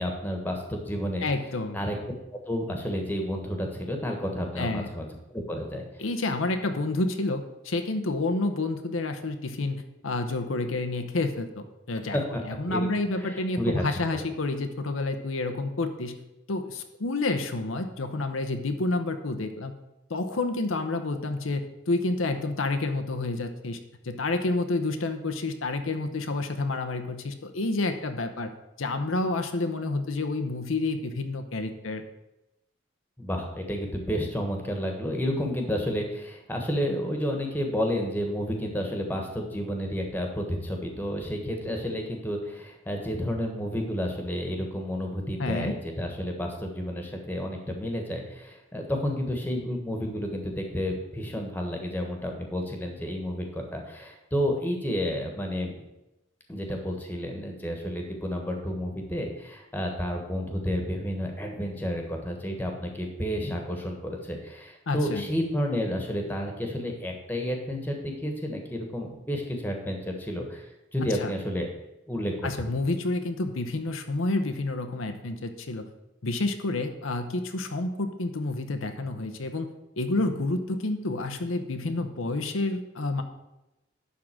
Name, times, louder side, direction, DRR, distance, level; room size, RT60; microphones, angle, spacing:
voice 1, 0.0-1.2 1.7-2.0 2.5-6.0 12.1-12.9 13.2-14.2 33.2-55.8 56.5-70.7 70.9-71.7 72.1-72.3, equal, 10° left, 2 dB, 1.4 m, -31 dB
voice 2, 1.2-1.8 4.6-4.9 6.0-12.2 12.4-16.2 16.5-19.7 20.1-23.8 24.0-28.5 28.8-32.0 45.4-45.7 64.9-65.2 71.2-71.3 72.4-75.9 76.2-79.7 80.0-83.2, left 2 dB, 85° left, 7 dB, 0.8 m, -29 dB
11.0 x 3.8 x 7.5 m, 0.95 s
head